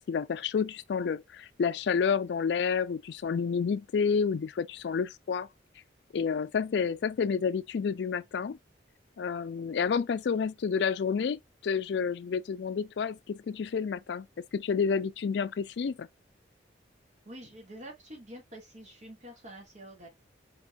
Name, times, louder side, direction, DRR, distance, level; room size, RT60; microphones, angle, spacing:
voice 1, 0.0-5.5 6.1-8.6 9.2-14.3 14.5-16.1, left 6 dB, 65° left, 0.3 m, -29 dB
voice 2, 17.2-20.1, equal, 40° right, 2.2 m, -47 dB
4.4 x 4.3 x 2.4 m
head